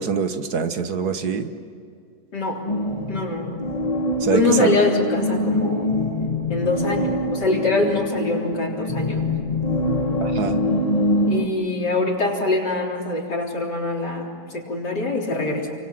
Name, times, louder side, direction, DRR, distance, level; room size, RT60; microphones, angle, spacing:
voice 1, 0.0-1.5 4.2-4.8 10.2-10.6, right 5 dB, 65° right, 8 dB, 1.8 m, -24 dB
voice 2, 2.3-2.7 3.1-3.6 4.3-5.9 6.5-9.3 11.3-15.7, left 2 dB, 75° left, -1 dB, 4.3 m, -24 dB
sound 1, 2.7-11.5, left 1 dB, 25° left, 1.3 m, -24 dB
29.0 x 24.5 x 7.6 m, 2.3 s
omnidirectional pair, 1.8 m